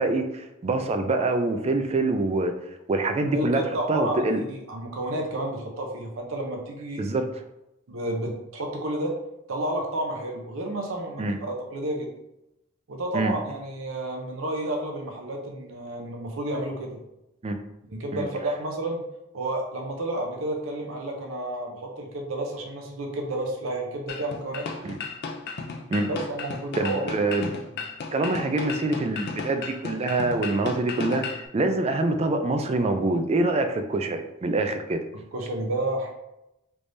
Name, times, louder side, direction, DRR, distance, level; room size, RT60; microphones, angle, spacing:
voice 1, 0.0-2.5 2.9-3.6 3.9-4.4 7.0-7.3 11.2-11.4 13.1-13.3 17.4-17.6 18.1-18.3 24.8-24.9 25.9-26.1 26.8-27.5 28.1-35.0, right 2 dB, 30° right, 7 dB, 0.3 m, -25 dB
voice 2, 3.3-7.0 7.9-9.2 9.5-12.1 12.9-17.0 17.9-19.0 19.3-25.0 26.1-27.4 35.3-36.1, right 1 dB, 70° right, 1 dB, 0.7 m, -31 dB
sound 1, 24.1-31.5, left 4 dB, 50° left, 0.4 m, -34 dB
3.3 x 3.2 x 2.6 m, 0.89 s
head